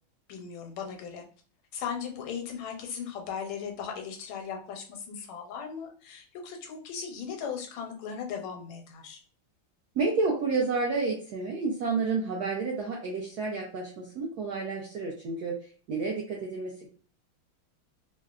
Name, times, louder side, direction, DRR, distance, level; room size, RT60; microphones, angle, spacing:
voice 1, 0.3-1.2 1.7-9.2, left 7 dB, 80° left, 2 dB, 1.4 m, -37 dB
voice 2, 9.9-16.9, right 4 dB, 80° right, -2 dB, 0.8 m, -30 dB
3.6 x 2.1 x 2.3 m, 0.43 s
omnidirectional pair, 2.3 m